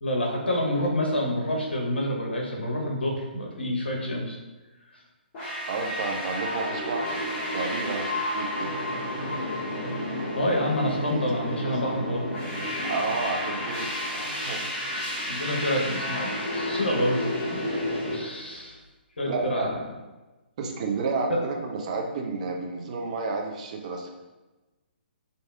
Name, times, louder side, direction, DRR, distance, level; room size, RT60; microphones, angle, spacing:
voice 1, 0.0-4.4 10.3-12.3 15.3-17.3 18.1-18.8 19.2-19.8, left 1 dB, 70° left, -1 dB, 0.9 m, -28 dB
sound 1, 5.3-18.2, left 1 dB, 30° left, 1.4 m, -31 dB
voice 2, 5.7-8.7 10.2-10.3 11.1-11.2 11.6-11.8 12.8-13.9 14.1-14.6 19.3-19.7 20.6-24.2, right 3 dB, 40° right, 2 dB, 0.5 m, -31 dB
4.5 x 2.6 x 2.3 m, 1.1 s
figure-of-eight pair, 130°, 6 cm